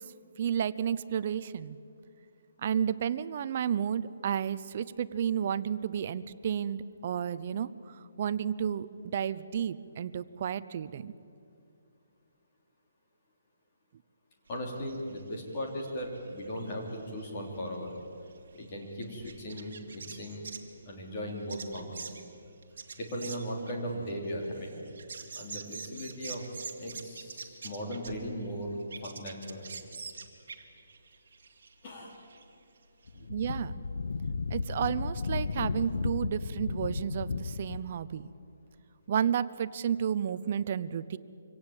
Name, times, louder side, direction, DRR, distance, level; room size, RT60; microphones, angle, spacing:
voice 1, 0.4-1.8 2.6-11.1 33.3-33.8 34.5-38.3 39.1-41.2, right 8 dB, 30° right, 15 dB, 0.6 m, -32 dB
voice 2, 14.5-17.9 18.5-20.4 20.8-22.1 23.0-24.8 25.3-26.4 26.8-28.7 29.0-29.6 31.8-32.1, equal, 25° left, 0 dB, 3.4 m, -37 dB
sound 1, 14.5-20.7 21.3-28.5 28.8-32.4 32.8-32.9 33.0-33.1, right 5 dB, 55° right, 2.2 m, -46 dB
Wind, 33.1-37.9, left 4 dB, 70° left, 0.7 m, -34 dB
25.0 x 17.0 x 8.9 m, 2.5 s
hypercardioid pair, 175°, 0 cm